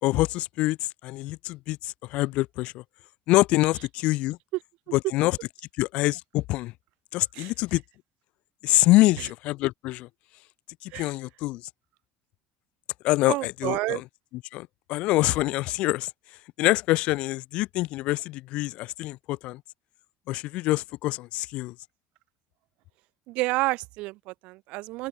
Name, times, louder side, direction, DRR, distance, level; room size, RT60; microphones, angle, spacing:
voice 1, 0.0-2.8 3.3-4.4 4.9-5.4 5.8-6.7 7.1-7.8 8.6-10.1 10.8-11.6 13.0-14.0 14.5-16.1 16.6-19.6 20.3-21.7, left 19 dB, 60° left, 6.6 m, -25 dB
voice 2, 13.3-14.0 23.3-25.1, right 21 dB, 65° right, 7.5 m, -29 dB
open air
cardioid pair, 160°, 2 cm